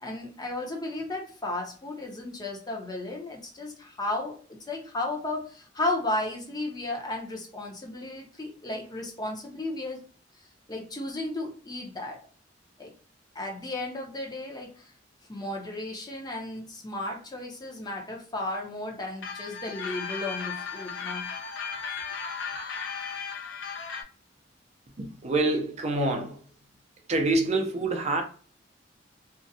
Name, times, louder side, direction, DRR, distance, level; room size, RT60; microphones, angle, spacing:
voice 1, 0.0-4.4 4.7-10.0 10.7-12.2 12.8-12.9 13.3-14.9 15.3-21.3, left 2 dB, 20° left, 0.6 m, -34 dB
sound 1, 19.2-24.0, left 5 dB, 75° left, 0.5 m, -35 dB
voice 2, 25.0-26.5 27.1-28.2, right 2 dB, 35° right, 0.4 m, -26 dB
2.5 x 2.1 x 2.7 m
head